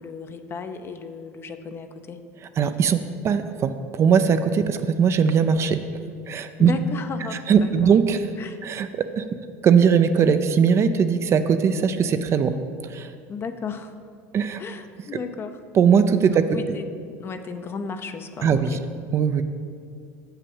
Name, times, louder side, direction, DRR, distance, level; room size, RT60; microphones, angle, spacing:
voice 1, 0.0-2.2 6.6-8.0 8.4-8.6 13.3-13.9 14.6-15.6 16.2-16.8 17.1-18.8, left 5 dB, 30° left, 8 dB, 0.6 m, -34 dB
voice 2, 2.6-5.8 6.3-6.7 7.5-8.2 8.6-9.3 9.6-12.5 12.8-13.1 14.3-14.6 15.7-16.6 18.4-18.8 19.1-19.4, right 6 dB, 40° right, 9 dB, 0.5 m, -20 dB
6.8 x 5.7 x 7.1 m, 2.2 s
supercardioid pair, 105°, 8 cm